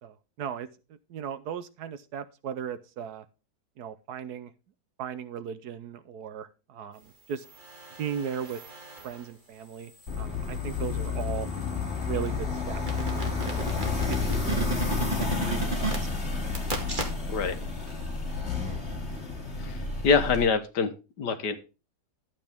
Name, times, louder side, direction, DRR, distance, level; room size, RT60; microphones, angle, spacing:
voice 1, 0.0-0.7 1.1-3.2 3.8-4.5 5.0-7.4 8.0-8.6 9.0-9.9 10.2-11.5 12.1-12.8 13.1-15.9 18.6-18.8, right 8 dB, 70° right, 13 dB, 1.3 m, -37 dB
sound 1, 7.3-9.3 9.8-17.5 17.9-18.0, right 3 dB, 30° right, 2.1 m, -37 dB
sound 2, 10.1-20.5, left 4 dB, 40° left, 3.1 m, -30 dB
voice 2, 20.0-20.9 21.2-21.6, left 5 dB, 75° left, 9 dB, 1.7 m, -24 dB
12.0 x 8.5 x 3.5 m, 0.30 s
omnidirectional pair, 1.8 m